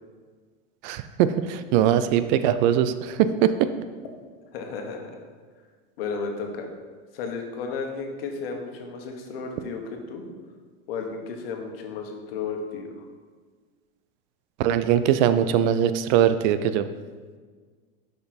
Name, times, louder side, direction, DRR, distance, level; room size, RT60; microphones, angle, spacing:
voice 1, 0.8-3.7 14.6-16.9, right 10 dB, 50° right, 12 dB, 0.4 m, -21 dB
voice 2, 4.5-5.1 6.0-6.7 7.1-10.3 10.9-13.1, left 4 dB, 75° left, 3 dB, 1.3 m, -33 dB
6.5 x 5.5 x 4.3 m, 1.5 s
supercardioid pair, 130°, 30 cm